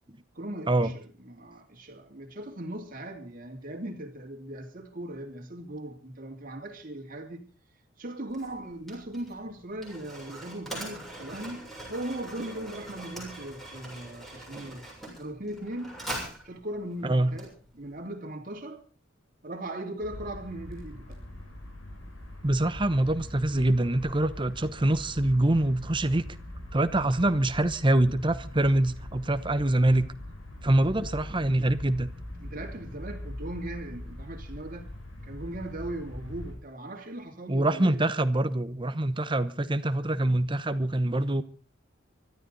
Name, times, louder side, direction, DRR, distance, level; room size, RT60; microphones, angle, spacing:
voice 1, 0.3-7.4 8.0-16.0 16.4-18.8 19.4-21.2 32.4-34.9 35.2-38.0, right 1 dB, 45° right, 2.8 m, -39 dB
Mechanisms, 8.3-18.0, right 1 dB, ahead, 7.1 m, -42 dB
voice 2, 17.0-17.4 22.4-26.2 26.7-30.1 30.6-32.1 37.5-41.4, right 1 dB, 25° right, 1.0 m, -25 dB
sound 1, 20.0-36.5, left 1 dB, 80° left, 7.1 m, -42 dB
24.5 x 13.0 x 4.0 m
head